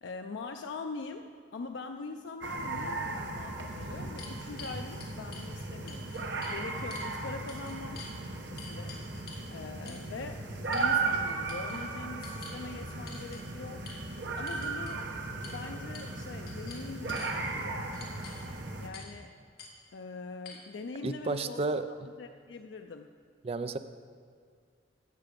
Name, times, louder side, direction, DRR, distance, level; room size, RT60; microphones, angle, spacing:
voice 1, 0.0-6.2 6.5-8.0 8.5-9.0 9.5-13.8 14.3-15.1 15.4-17.9 18.8-19.3 19.9-21.8 22.2-23.1, left 4 dB, 90° left, 5 dB, 0.4 m, -43 dB
sound 1, 2.4-18.9, right 3 dB, 80° right, 1.0 m, -36 dB
sound 2, 3.7-5.5 5.9-6.6 6.9-7.1 7.5-8.1 8.6-9.5 9.9-10.1 10.7-11.2 11.5-11.8 12.2-12.6 13.1-13.4 13.9-14.0 14.5-15.0 15.4-15.6 15.9-16.2 16.5-17.3 17.9-18.5 18.9-19.2 19.6-19.7 20.5-20.6, left 4 dB, 60° left, 1.6 m, -47 dB
voice 2, 21.0-22.1 23.4-23.8, right 3 dB, 35° right, 11 dB, 0.4 m, -32 dB
15.0 x 5.8 x 5.1 m, 2.1 s
head